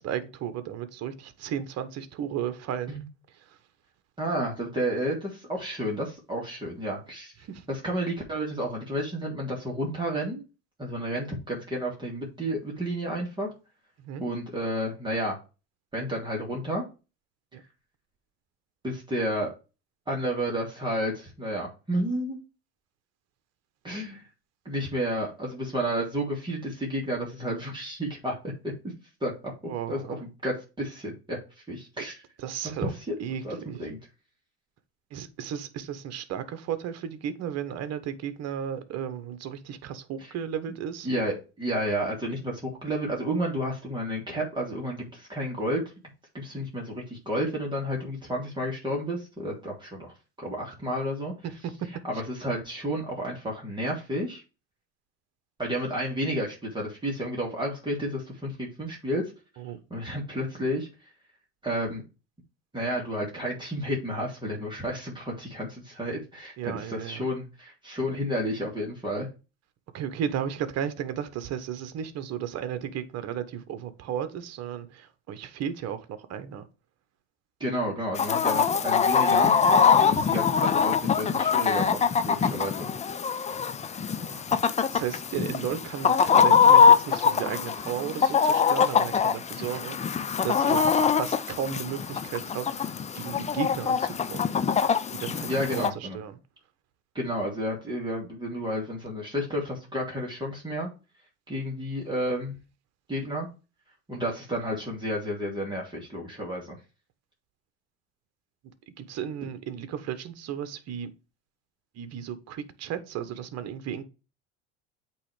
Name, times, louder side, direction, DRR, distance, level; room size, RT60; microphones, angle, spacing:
voice 1, 0.0-3.0 7.5-7.6 14.0-14.2 17.5-17.6 29.7-30.2 32.0-32.1 32.4-32.9 33.2-33.9 35.1-41.1 59.6-59.8 66.6-67.2 69.9-76.7 84.2-84.4 84.9-92.9 93.1-94.5 95.1-96.4 109.0-111.1 112.0-114.0, right 9 dB, 50° right, 1.2 m, -34 dB
voice 2, 4.2-7.3 7.7-10.4 10.8-13.5 14.2-15.4 15.9-16.8 18.8-19.5 20.1-22.4 23.8-24.2 24.6-28.3 28.6-28.7 29.2-29.5 29.9-31.4 31.7-32.2 32.8-33.1 33.4-34.0 41.0-45.8 46.3-51.3 52.0-54.4 55.6-59.2 59.9-60.9 61.6-62.0 62.7-69.3 77.6-79.5 80.1-82.9 95.5-96.2 97.1-100.9 101.5-102.6 103.1-103.5 104.1-106.8, equal, 15° right, 2.4 m, -31 dB
Chicken rooster, 78.1-95.9, left 6 dB, 20° left, 0.5 m, -23 dB
8.4 x 3.2 x 5.0 m
supercardioid pair, 90°, 32 cm